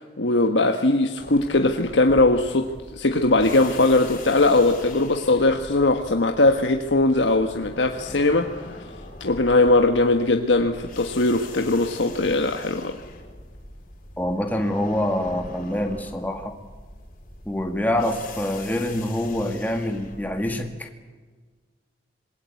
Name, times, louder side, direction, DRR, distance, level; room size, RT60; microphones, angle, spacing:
voice 1, 0.2-8.8 9.2-13.0, left 2 dB, 90° left, 4 dB, 1.5 m, -20 dB
sound 1, 1.2-20.7, left 2 dB, 50° left, 4.4 m, -42 dB
voice 2, 14.2-16.5 17.5-20.9, left 1 dB, 10° left, 4 dB, 2.0 m, -26 dB
26.0 x 21.5 x 8.4 m, 1.4 s
head